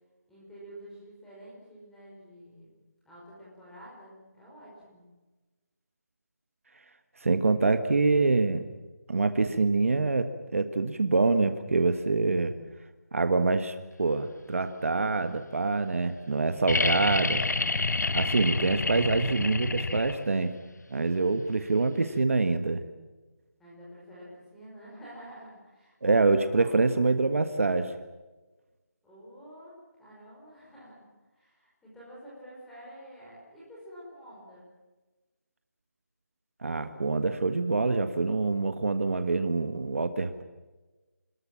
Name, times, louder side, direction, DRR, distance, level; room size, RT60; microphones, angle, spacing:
voice 1, 0.3-2.7 3.0-5.1 23.6-26.3 26.5-26.7 29.0-29.7 30.0-31.1 31.3-34.7, equal, 5° left, -7 dB, 5.2 m, -49 dB
voice 2, 7.2-8.6 9.1-12.5 13.1-17.4 18.1-20.5 20.9-22.8 26.0-27.9 36.6-40.4, right 3 dB, 50° right, 9 dB, 1.5 m, -25 dB
sound 1, 16.7-20.4 22.2-22.3, left 3 dB, 80° left, 1.1 m, -28 dB
27.5 x 21.0 x 7.4 m, 1.2 s
figure-of-eight pair, 175°, 9 cm